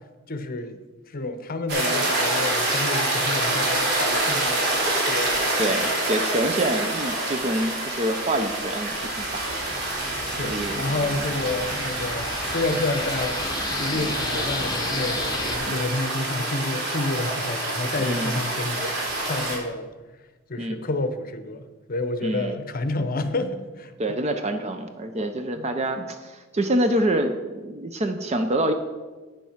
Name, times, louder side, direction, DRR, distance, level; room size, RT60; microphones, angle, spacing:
voice 1, 0.3-0.8 1.1-5.7 10.2-13.4 13.8-18.9 19.2-19.9 20.5-21.6 21.9-24.2 25.5-25.7, left 2 dB, 45° left, 10 dB, 0.8 m, -29 dB
sound 1, 1.7-19.6, right 2 dB, 55° right, 3.3 m, -27 dB
voice 2, 5.6-9.0 9.3-9.4 10.4-10.9 13.9-14.1 15.7-15.9 18.0-18.3 20.6-20.8 22.2-22.6 24.0-28.7, right 1 dB, 35° right, 7 dB, 0.6 m, -26 dB
sound 2, 8.2-15.6, left 3 dB, 20° left, 1.1 m, -34 dB
9.1 x 7.4 x 5.7 m, 1.3 s
head